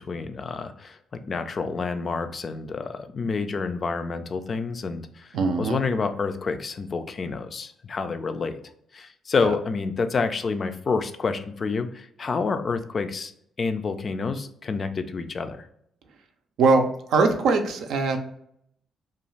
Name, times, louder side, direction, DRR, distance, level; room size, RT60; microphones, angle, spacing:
voice 1, 0.1-1.0 1.3-5.3 5.6-8.6 8.9-13.3 13.6-15.7, left 4 dB, 45° left, 9 dB, 0.3 m, -28 dB
voice 2, 5.3-5.8 9.4-9.5 16.6-16.8 17.1-18.2, right 4 dB, 80° right, 5 dB, 0.4 m, -21 dB
2.5 x 2.3 x 3.0 m, 0.70 s
cardioid pair, 90°, 0 cm